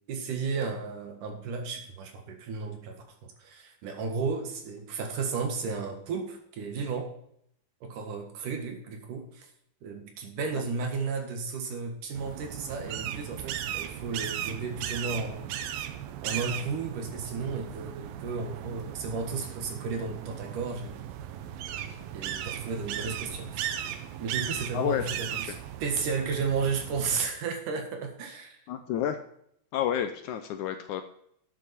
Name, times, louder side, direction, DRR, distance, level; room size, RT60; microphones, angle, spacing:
voice 1, 0.1-3.0 3.2-7.1 7.8-9.5 9.8-15.5 15.8-15.9 16.2-21.0 22.1-23.8 24.2-28.6, right 5 dB, 65° right, 4 dB, 3.1 m, -33 dB
sound 1, 12.2-27.3, right 10 dB, 85° right, 2.7 m, -37 dB
voice 2, 24.7-25.1 28.7-29.2 29.7-31.0, left 10 dB, 75° left, 8 dB, 1.9 m, -29 dB
12.0 x 8.9 x 4.3 m, 0.70 s
omnidirectional pair, 4.0 m